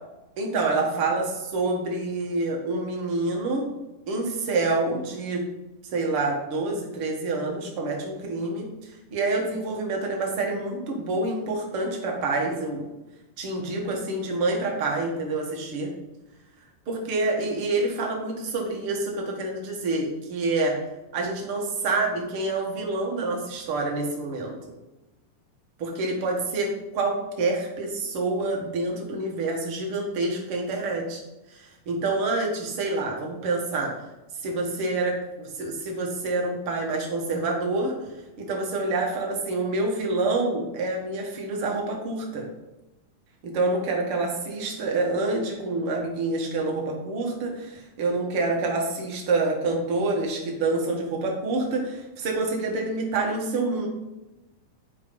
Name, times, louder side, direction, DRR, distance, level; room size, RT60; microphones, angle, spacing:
voice 1, 0.4-3.7 4.1-5.4 5.8-12.8 13.4-15.9 16.9-20.8 21.1-24.5 25.8-31.2 31.5-33.9 34.4-38.0 38.4-42.5 43.4-53.9, right 2 dB, 45° right, 0 dB, 2.3 m, -27 dB
10.5 x 4.9 x 5.4 m, 1.0 s
omnidirectional pair, 4.0 m